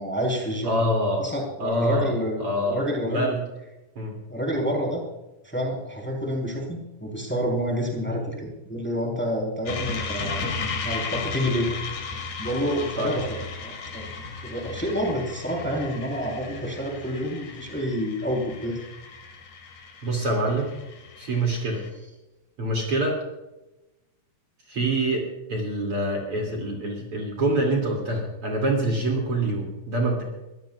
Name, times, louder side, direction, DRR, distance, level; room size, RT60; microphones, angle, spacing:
voice 1, 0.0-0.9 1.2-3.3 4.3-5.0 5.4-12.0 12.4-14.1 14.4-18.8, equal, 5° left, -1 dB, 4.2 m, -28 dB
voice 2, 0.6-1.2 1.6-2.1 2.4-3.4 4.0-4.1 13.0-13.1 20.0-20.7 21.2-21.8 22.6-23.2 24.7-25.2 25.5-30.2, right 1 dB, 45° right, 0 dB, 3.5 m, -25 dB
sound 1, 9.7-21.9, left 4 dB, 70° left, 3.7 m, -35 dB
24.0 x 16.5 x 2.5 m, 1.0 s
omnidirectional pair, 3.7 m